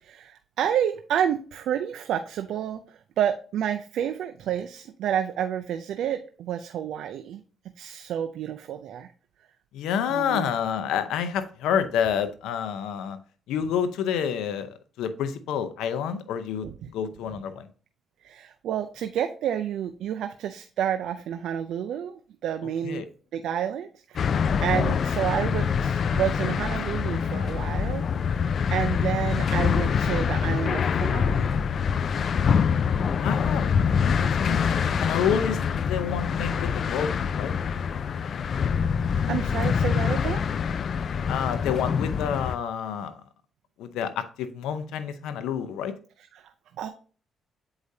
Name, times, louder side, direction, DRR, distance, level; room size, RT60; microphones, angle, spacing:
voice 1, 0.0-9.1 10.1-10.5 16.6-16.9 18.2-23.0 23.3-24.3 24.6-28.4 28.7-31.6 34.5-34.8 38.6-38.8 39.3-40.4 46.3-46.9, right 9 dB, 80° right, 7 dB, 0.4 m, -30 dB
voice 2, 9.7-13.2 13.5-17.7 22.8-23.1 33.2-33.7 34.1-37.5 41.3-43.2 43.8-45.9, left 8 dB, 90° left, 11 dB, 0.7 m, -29 dB
sound 1, 24.1-42.6, left 6 dB, 55° left, 0.3 m, -25 dB
8.0 x 4.8 x 2.7 m, 0.40 s
cardioid pair, 90°, 0 cm